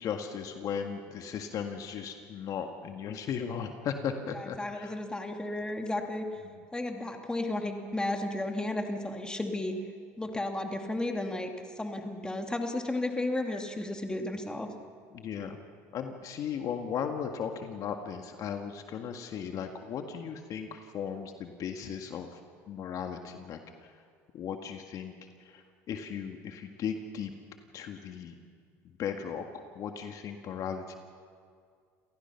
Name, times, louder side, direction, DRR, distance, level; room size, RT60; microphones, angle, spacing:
voice 1, 0.0-4.9 6.4-6.5 15.1-15.6 15.9-22.3 22.7-23.9 24.3-25.1 25.4-27.3 27.7-28.3 28.8-30.9, left 7 dB, 55° left, 5 dB, 1.8 m, -36 dB
voice 2, 4.3-6.2 6.7-9.7 10.2-11.5 11.8-14.7, left 2 dB, 10° left, 4 dB, 2.6 m, -33 dB
29.0 x 17.5 x 5.9 m, 2.1 s
supercardioid pair, 90°, 7 cm